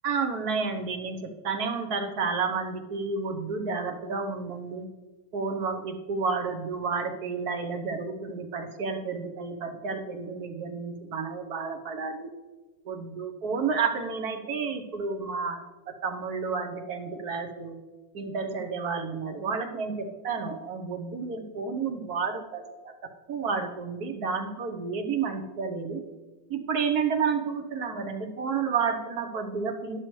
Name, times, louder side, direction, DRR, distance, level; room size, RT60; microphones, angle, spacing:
voice 1, 0.0-4.8 5.3-12.3 12.9-15.6 16.0-17.7 18.1-22.9 23.3-26.0 26.5-30.0, right 5 dB, 60° right, 6 dB, 1.4 m, -31 dB
12.0 x 10.5 x 3.2 m, 1.2 s
omnidirectional pair, 2.0 m